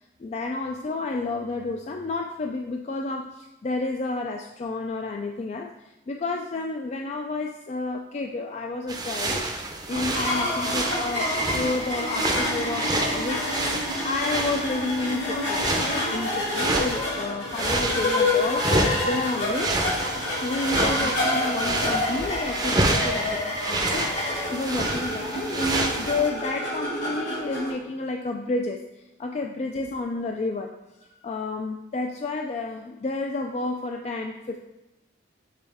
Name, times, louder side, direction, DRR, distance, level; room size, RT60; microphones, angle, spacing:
voice 1, 0.2-9.5 9.9-19.8 20.4-28.8 29.2-30.7 31.0-34.6, left 3 dB, 35° left, 3 dB, 0.3 m, -31 dB
sound 1, 8.9-17.2 17.5-26.3, right 2 dB, 20° right, 0.6 m, -29 dB
sound 2, 9.9-27.7, left 1 dB, 65° left, 2.1 m, -28 dB
7.3 x 4.2 x 3.5 m, 0.98 s
head